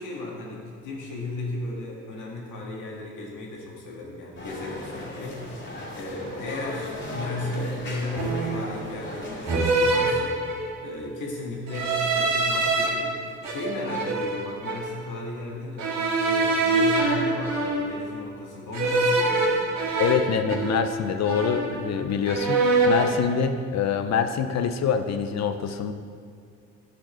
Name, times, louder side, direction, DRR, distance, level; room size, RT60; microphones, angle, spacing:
voice 1, 0.0-19.6, left 1 dB, 80° left, -2 dB, 2.0 m, -35 dB
sound 1, 4.3-9.6, left 1 dB, 40° left, 2.3 m, -36 dB
sound 2, 7.1-7.3 8.1-8.7 9.5-10.9 11.7-12.9 13.4-15.0 15.8-18.1 18.7-21.0 21.2-22.0 22.3-23.2, right 3 dB, 65° right, 1.9 m, -25 dB
voice 2, 20.0-25.9, left 7 dB, 60° left, 8 dB, 0.7 m, -25 dB
10.0 x 6.5 x 4.4 m, 2.3 s
cardioid pair, 90°, 30 cm